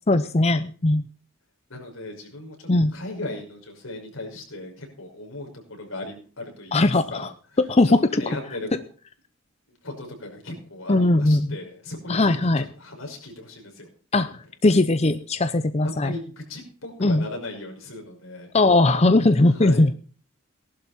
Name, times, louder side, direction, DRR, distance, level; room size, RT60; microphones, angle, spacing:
voice 1, 0.1-1.0 2.7-2.9 6.7-8.4 10.9-11.6 12.1-12.7 14.1-16.1 17.0-17.3 18.5-19.9, left 2 dB, 30° left, 12 dB, 0.6 m, -20 dB
voice 2, 1.7-2.6 2.9-6.8 7.1-7.3 7.8-8.7 9.8-13.9 15.8-18.5 19.5-19.9, left 2 dB, 85° left, 2 dB, 5.8 m, -37 dB
18.5 x 11.5 x 4.3 m, 0.40 s
head